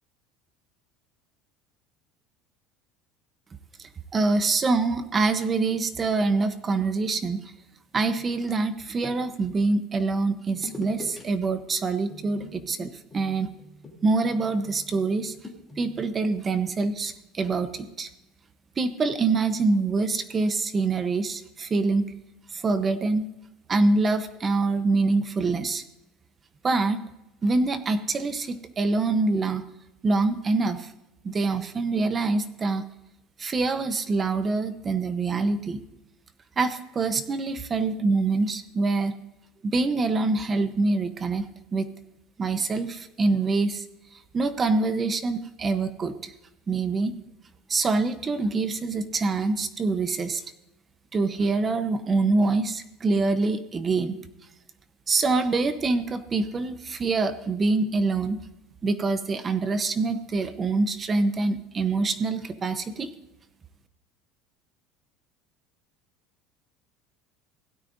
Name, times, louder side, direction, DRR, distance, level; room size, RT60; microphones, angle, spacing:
voice 1, 3.8-7.5 7.9-13.5 14.0-15.4 15.8-18.1 18.8-22.1 22.5-23.3 23.7-25.8 26.6-27.1 27.4-29.6 30.0-30.9 31.2-32.8 33.4-35.8 36.6-39.1 39.6-41.5 41.7-41.9 42.4-43.9 44.1-46.3 46.7-47.2 47.7-50.4 51.1-54.2 55.1-58.4 58.8-63.1, right 3 dB, 20° right, 11 dB, 0.7 m, -25 dB
sound 1, 8.1-9.5 10.5-11.2 11.5-11.8 12.1-16.1, left 3 dB, 15° left, 2.8 m, -44 dB
16.5 x 12.0 x 2.6 m, 0.88 s
cardioid pair, 145°, 0 cm